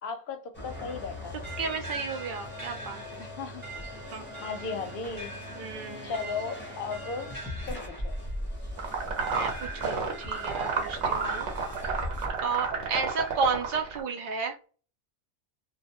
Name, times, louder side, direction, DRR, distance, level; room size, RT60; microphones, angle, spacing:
voice 1, 0.0-1.4 3.2-3.6 4.4-5.4 6.0-7.3 7.7-8.1 11.2-11.4, left 5 dB, 60° left, 0.7 m, -36 dB
sound 1, 0.5-12.3, left 1 dB, 15° left, 0.6 m, -40 dB
sound 2, 0.7-12.4 12.8-13.8, right 2 dB, 20° right, 0.7 m, -45 dB
voice 2, 1.6-3.3 4.1-4.2 5.6-6.2 9.3-11.5 12.4-14.6, right 5 dB, 55° right, 0.7 m, -32 dB
sound 3, 8.8-14.0, right 5 dB, 90° right, 1.1 m, -31 dB
2.3 x 2.1 x 2.7 m
omnidirectional pair, 1.1 m